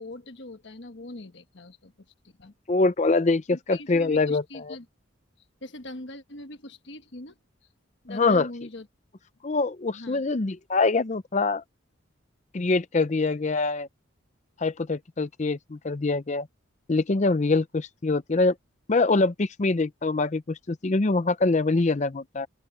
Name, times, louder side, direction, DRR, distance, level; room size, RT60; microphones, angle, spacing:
voice 1, 0.0-1.9 2.2-2.5 3.5-4.8 5.6-7.3 8.0-8.9 9.9-10.2, left 1 dB, 60° left, 1.4 m, -41 dB
voice 2, 2.7-4.8 8.1-8.5 9.4-11.6 12.5-13.9 14.6-16.5 16.9-18.5 18.9-22.5, left 3 dB, 35° left, 0.5 m, -24 dB
open air
head